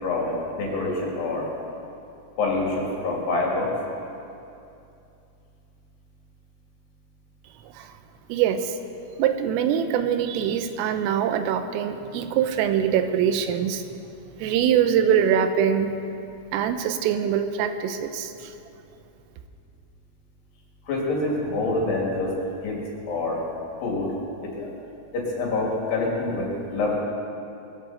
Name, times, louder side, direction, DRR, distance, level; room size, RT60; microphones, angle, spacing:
voice 1, 0.0-1.5 2.4-3.7 20.9-22.3 22.6-23.4 23.8-24.1 24.4-24.7 25.1-27.0, left 2 dB, 60° left, -3 dB, 4.5 m, -26 dB
voice 2, 8.3-8.8 9.2-13.8 14.4-15.9 16.5-18.5, right 8 dB, 90° right, 8 dB, 3.5 m, -23 dB
21.5 x 15.0 x 4.4 m, 2.7 s
omnidirectional pair, 5.7 m